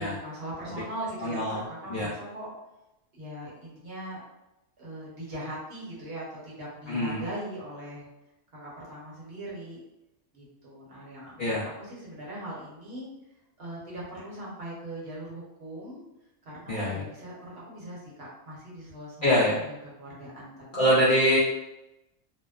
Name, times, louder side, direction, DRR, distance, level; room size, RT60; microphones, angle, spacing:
voice 1, 0.0-2.5 3.1-4.2 4.8-8.1 8.5-9.8 10.3-13.1 13.6-16.0 16.4-20.9, right 1 dB, 55° right, -6 dB, 1.0 m, -40 dB
voice 2, 1.2-1.6 1.9-2.1 6.9-7.2 11.4-11.7 16.7-17.0 19.2-19.6 20.7-21.4, equal, 60° left, -7 dB, 0.5 m, -24 dB
2.7 x 2.0 x 2.3 m, 0.93 s
omnidirectional pair, 1.3 m